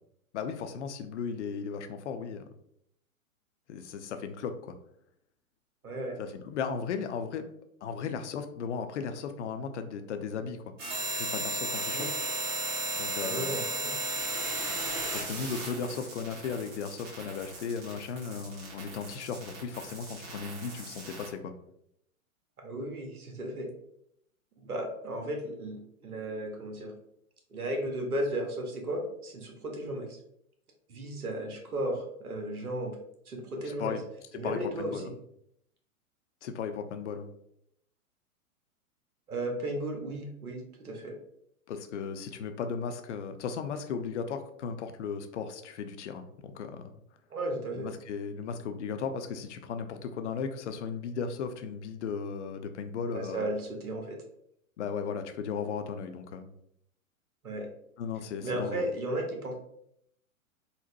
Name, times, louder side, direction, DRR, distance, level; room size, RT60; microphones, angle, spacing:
voice 1, 0.3-2.4 3.7-4.7 6.2-7.5 7.8-10.6 11.1-12.1 13.0-13.6 15.1-21.5 33.6-34.0 34.3-35.1 36.4-37.3 41.7-46.9 47.7-53.4 54.8-56.5 58.0-58.8, left 6 dB, 55° left, 8 dB, 0.5 m, -36 dB
voice 2, 5.8-6.2 11.9-12.1 13.2-14.0 22.6-23.7 24.6-26.9 27.5-30.2 30.9-32.9 33.3-33.9 34.3-34.9 39.3-41.1 47.3-47.9 53.1-54.2 57.4-57.7 58.4-59.6, right 1 dB, 85° right, 2 dB, 0.9 m, -35 dB
sound 1, 10.8-21.3, right 1 dB, 60° right, 1.4 m, -35 dB
4.0 x 2.1 x 2.6 m, 0.74 s
figure-of-eight pair, 110°, 43 cm